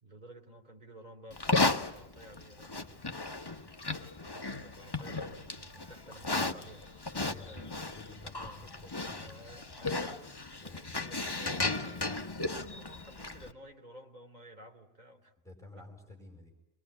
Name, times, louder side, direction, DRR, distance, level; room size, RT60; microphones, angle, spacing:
voice 1, 0.0-3.5 4.2-7.8 8.4-8.6 9.2-15.3 15.8-15.9, right 1 dB, 35° right, 4 dB, 3.4 m, -53 dB
Livestock farm animals working animals, 1.3-13.5, left 3 dB, 20° left, 1.1 m, -35 dB
voice 2, 7.1-9.4 10.6-11.3 15.4-16.5, left 2 dB, ahead, 2 dB, 4.7 m, -52 dB
26.0 x 22.0 x 9.7 m, 0.97 s
omnidirectional pair, 1.3 m